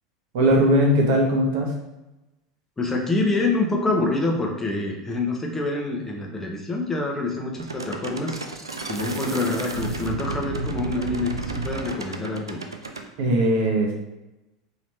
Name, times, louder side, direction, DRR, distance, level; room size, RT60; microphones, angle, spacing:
voice 1, 0.3-1.7 13.2-13.9, equal, 55° right, 0 dB, 0.9 m, -19 dB
voice 2, 2.8-8.4 8.9-12.6, left 2 dB, 15° left, 0 dB, 0.8 m, -26 dB
sound 1, 7.6-13.1, right 3 dB, 80° right, 0.4 m, -32 dB
4.1 x 3.0 x 3.2 m, 1.0 s
figure-of-eight pair, 80°, 2 cm